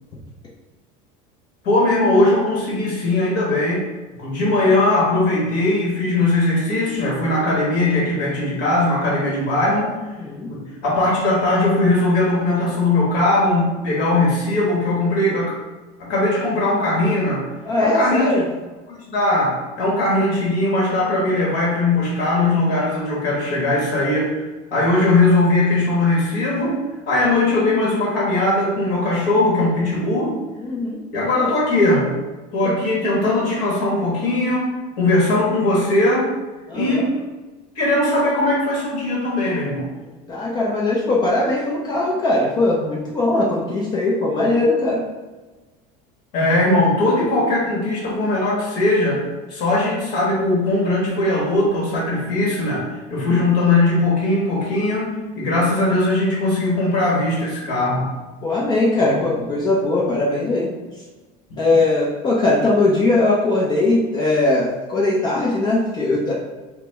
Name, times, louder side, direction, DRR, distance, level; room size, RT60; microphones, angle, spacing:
voice 1, 1.6-3.8 4.2-9.9 10.5-15.6 16.0-17.4 17.8-18.3 18.9-24.4 24.7-26.8 27.1-30.4 31.1-32.1 32.5-36.3 36.7-37.2 37.7-39.9 46.3-49.2 49.5-58.1, left 2 dB, 50° left, -4 dB, 1.3 m, -19 dB
voice 2, 10.2-10.5 17.6-18.4 30.6-31.0 31.3-31.5 32.6-32.7 36.7-37.1 40.3-45.0 46.4-46.5 58.4-60.7 61.6-66.3, left 2 dB, 20° left, -4 dB, 0.5 m, -20 dB
5.8 x 2.1 x 3.5 m, 1.2 s
cardioid pair, 170°, 19 cm